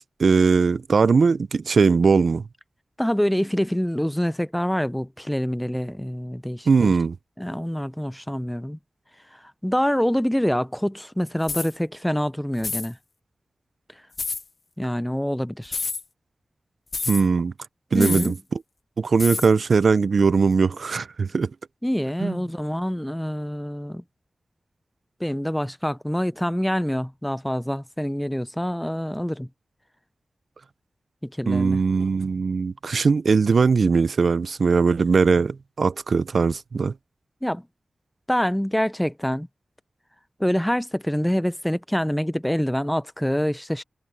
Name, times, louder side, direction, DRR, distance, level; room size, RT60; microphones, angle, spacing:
voice 1, 0.0-2.4 6.7-7.2 17.1-17.5 17.9-18.3 19.0-21.5 22.2-22.4 31.5-36.9, right 5 dB, 75° right, 0.4 m, -20 dB
voice 2, 3.0-6.9 7.4-8.8 9.3-13.0 14.8-15.8 17.9-18.4 21.8-24.0 25.2-29.5 31.2-31.8 37.4-37.6 38.3-39.5 40.4-43.8, equal, 5° left, 0.6 m, -26 dB
sound 1, 11.4-11.7 12.6-12.9 14.2-14.4 15.7-16.0 16.9-17.2 18.0-18.3 19.2-19.5, left 3 dB, 50° left, 0.9 m, -29 dB
wide cardioid pair, 95°, 0 cm